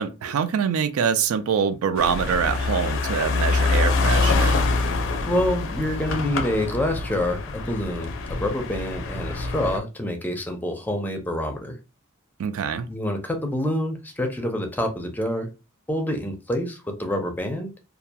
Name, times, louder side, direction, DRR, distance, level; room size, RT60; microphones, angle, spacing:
voice 1, 0.0-4.6 12.4-12.9, right 7 dB, 80° right, 0.4 m, -24 dB
sound 1, 2.0-9.8, left 3 dB, 60° left, 0.4 m, -25 dB
voice 2, 5.2-11.8 12.9-15.5 15.9-17.7, left 1 dB, 10° left, 0.5 m, -27 dB
2.8 x 2.3 x 2.2 m
head